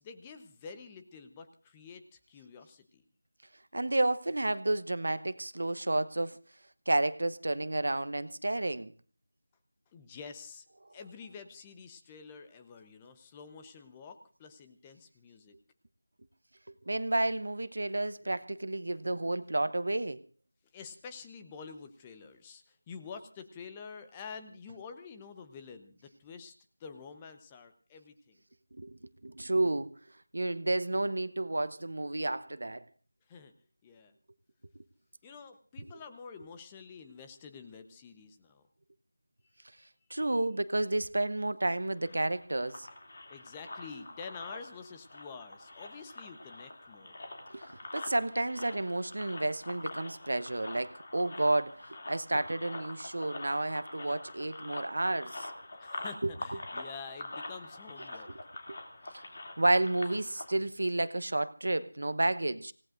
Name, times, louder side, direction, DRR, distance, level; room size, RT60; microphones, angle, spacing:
voice 1, 0.0-3.0 9.9-10.6 10.9-15.5 20.7-26.5 26.8-28.4 33.3-33.5 33.8-34.1 35.2-38.7 39.7-39.9 43.3-47.2 55.8-58.3, left 5 dB, 15° left, 0.9 m, -48 dB
voice 2, 3.7-6.4 6.9-8.9 16.9-20.2 28.7-29.9 30.3-32.8 40.1-42.9 47.5-47.7 47.9-55.5 56.2-56.3 58.7-58.8 59.6-62.7, right 2 dB, 65° right, 0.9 m, -31 dB
sound 1, 41.8-60.5, left 2 dB, 45° left, 2.7 m, -45 dB
26.5 x 17.5 x 2.6 m
figure-of-eight pair, 170°, 0 cm